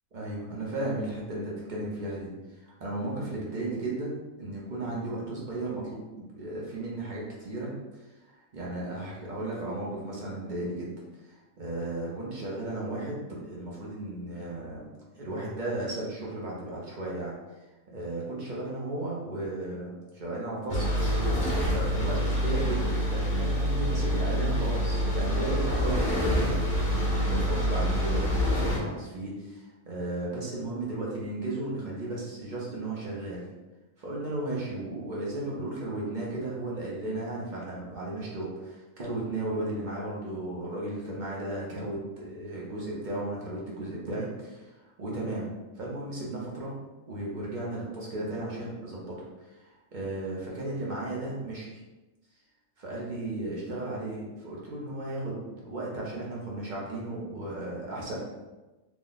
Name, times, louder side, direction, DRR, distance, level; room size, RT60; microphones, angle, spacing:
voice 1, 0.1-7.7 8.3-10.9 11.2-17.3 17.9-20.9 21.1-33.4 34.0-45.5 45.8-46.7 47.1-49.1 49.4-51.7 52.8-58.2, right 2 dB, 45° right, -5 dB, 0.7 m, -35 dB
sound 1, 20.7-28.8, equal, 45° left, 0.9 m, -26 dB
3.0 x 2.1 x 3.9 m, 1.1 s
omnidirectional pair, 1.4 m